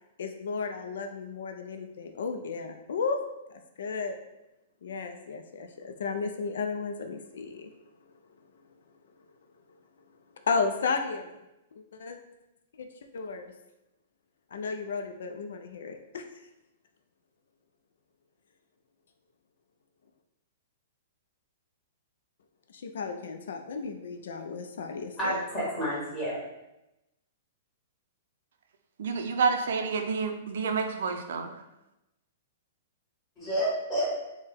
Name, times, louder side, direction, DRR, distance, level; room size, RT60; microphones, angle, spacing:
voice 1, 0.2-3.2 3.5-4.2 4.8-7.7 10.5-11.4 11.9-12.2 12.8-13.5 14.5-16.2 22.7-25.4, left 4 dB, 75° left, 5 dB, 0.3 m, -33 dB
voice 2, 25.2-26.4 33.4-34.1, right 1 dB, 10° left, -9 dB, 1.3 m, -29 dB
voice 3, 29.0-31.5, right 5 dB, 65° right, 6 dB, 0.4 m, -29 dB
4.5 x 2.1 x 3.4 m, 0.93 s
hypercardioid pair, 180°, 0 cm